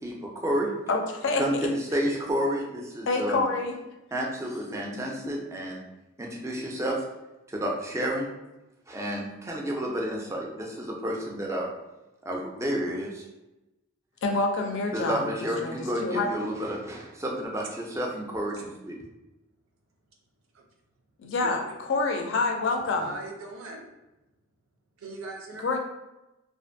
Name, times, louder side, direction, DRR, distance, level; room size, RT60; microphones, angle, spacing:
voice 1, 0.0-0.7 1.4-3.4 4.1-5.8 6.2-7.0 7.5-8.3 8.9-11.7 12.3-13.3 14.9-19.0, equal, 15° right, -1 dB, 0.4 m, -30 dB
voice 2, 0.9-1.7 3.1-3.8 4.9-5.3 14.2-16.3 21.2-23.1 25.6-25.8, left 3 dB, 60° left, 3 dB, 0.4 m, -27 dB
voice 3, 21.4-21.7 22.9-23.8 25.0-25.8, right 2 dB, 90° right, 1 dB, 0.5 m, -40 dB
2.5 x 2.5 x 2.5 m, 0.99 s
head